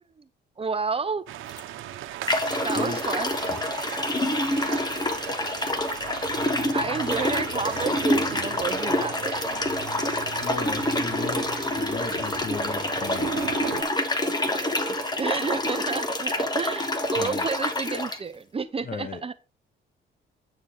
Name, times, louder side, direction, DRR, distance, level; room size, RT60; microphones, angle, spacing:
voice 1, 0.6-1.2 2.6-3.3 6.7-9.6 14.2-19.3, right 5 dB, 30° right, 0.7 m, -31 dB
sound 1, 1.3-13.8, right 12 dB, 85° right, 0.9 m, -38 dB
sound 2, 1.5-1.6 2.3-18.2, left 1 dB, 20° left, 1.6 m, -27 dB
voice 2, 10.4-13.3 17.1-17.5 18.8-19.2, left 5 dB, 45° left, 1.6 m, -36 dB
9.5 x 6.6 x 3.8 m
cardioid pair, 90°, 20 cm